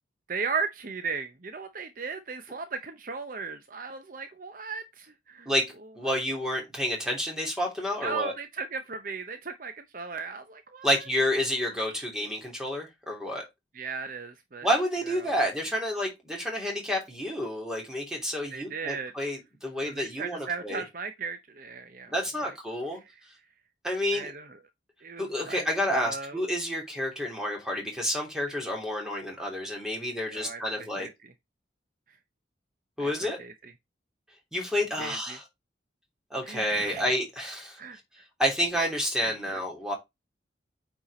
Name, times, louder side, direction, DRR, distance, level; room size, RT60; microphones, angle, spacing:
voice 1, 0.3-5.5 8.0-11.0 11.6-11.7 13.7-14.7 15.1-15.3 18.5-19.1 19.9-22.1 24.1-24.5 25.0-25.7 25.9-26.4 30.3-31.1 33.0-33.5 35.0-35.4 36.4-37.1 37.8-38.0 39.3-39.6, right 5 dB, 45° right, 0.7 m, -36 dB
voice 2, 5.9-8.3 10.8-13.5 14.6-20.8 22.1-23.0 23.8-24.3 25.2-31.1 33.0-33.4 34.5-35.4 36.3-37.8 38.4-39.9, equal, 5° right, 3.1 m, -29 dB
8.9 x 4.5 x 4.2 m
head